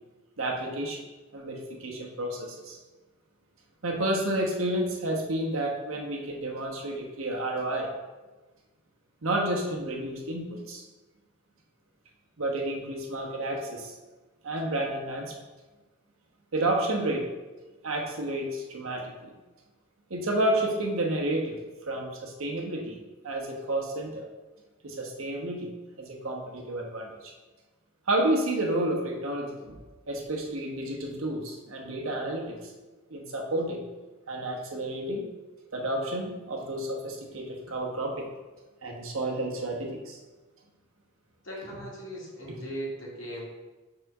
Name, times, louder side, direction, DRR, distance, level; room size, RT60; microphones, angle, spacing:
voice 1, 0.4-1.0 1.3-2.8 3.8-7.9 9.2-10.8 12.4-13.9 14.4-15.3 16.5-17.3 17.8-19.3 20.1-21.6 21.9-23.0 23.2-24.3 24.8-25.7 26.0-27.3 28.1-29.8 30.1-32.6 33.1-33.8 34.3-35.2 35.7-38.3 38.8-40.2, right 1 dB, 75° right, 0 dB, 1.1 m, -30 dB
voice 2, 41.4-43.5, right 1 dB, 60° left, -5 dB, 2.1 m, -38 dB
4.6 x 4.3 x 5.4 m, 1.2 s
head